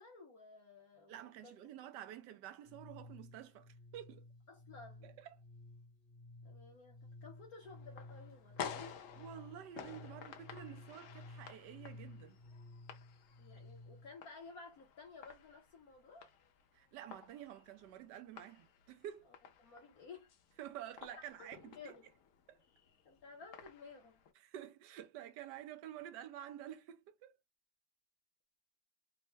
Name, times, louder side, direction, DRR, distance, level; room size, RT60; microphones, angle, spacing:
voice 1, 0.0-1.7 4.5-5.2 6.4-9.0 13.4-16.3 19.2-20.3 21.4-22.1 23.0-24.2, left 4 dB, 60° left, 1.2 m, -55 dB
voice 2, 1.1-4.2 5.0-5.4 9.2-12.4 16.7-19.3 20.6-21.9 22.5-22.6 24.4-27.4, right 11 dB, 75° right, 1.1 m, -50 dB
sound 1, 2.6-14.2, left 2 dB, 40° left, 0.7 m, -55 dB
sound 2, 7.6-24.3, left 8 dB, 75° left, 0.7 m, -52 dB
3.4 x 2.1 x 3.2 m
omnidirectional pair, 2.0 m